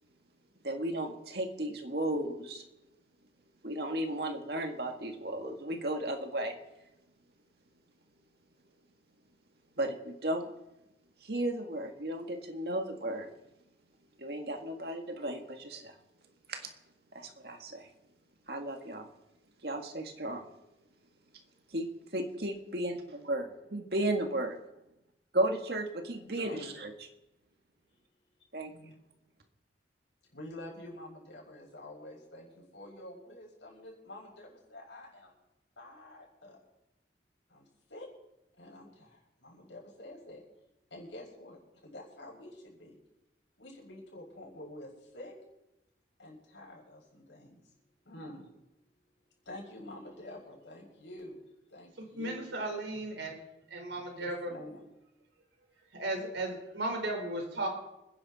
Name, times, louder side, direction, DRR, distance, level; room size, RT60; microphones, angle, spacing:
voice 1, 0.6-2.6 3.6-6.6 9.8-10.5 11.2-13.3 14.2-16.0 16.5-16.7 17.1-17.9 18.5-19.1 19.6-20.5 21.7-24.6 25.3-26.9 28.5-28.9, right 1 dB, 60° right, 4 dB, 2.0 m, -34 dB
voice 2, 26.2-26.7 28.7-28.9 30.3-35.3 35.8-36.6 37.5-38.1 38.6-40.4 40.9-43.0 43.6-45.4 46.2-47.6 48.0-48.5 49.4-51.4 51.7-52.4 54.1-54.8, left 1 dB, 80° left, -2 dB, 6.5 m, -48 dB
voice 3, 52.0-53.4 53.7-54.5 55.9-57.7, right 1 dB, 85° right, 2 dB, 4.5 m, -35 dB
27.0 x 10.5 x 4.3 m, 0.92 s
head